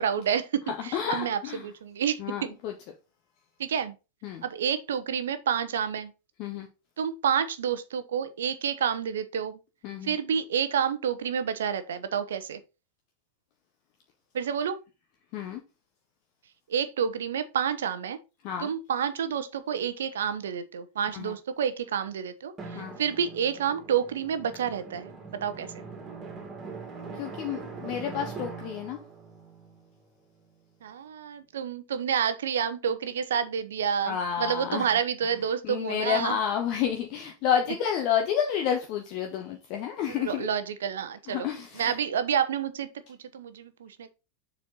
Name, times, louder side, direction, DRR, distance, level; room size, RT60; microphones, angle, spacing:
voice 1, 0.0-2.5 3.6-3.9 4.4-6.1 7.0-9.6 10.0-12.6 14.3-14.8 16.7-18.2 18.6-25.7 30.8-36.4 40.1-41.5 41.8-44.1, right 8 dB, 60° right, 0.9 m, -29 dB
voice 2, 0.7-1.7 2.2-2.7 4.2-4.4 6.4-6.7 9.8-10.1 15.3-15.6 18.4-18.7 21.1-21.3 22.7-23.0 27.1-29.0 34.0-34.9 35.6-40.5 41.3-42.0, left 8 dB, 40° left, 1.1 m, -30 dB
Drum, 22.6-30.9, right 4 dB, 20° right, 2.5 m, -42 dB
7.1 x 4.4 x 4.1 m
figure-of-eight pair, 90°, 0 cm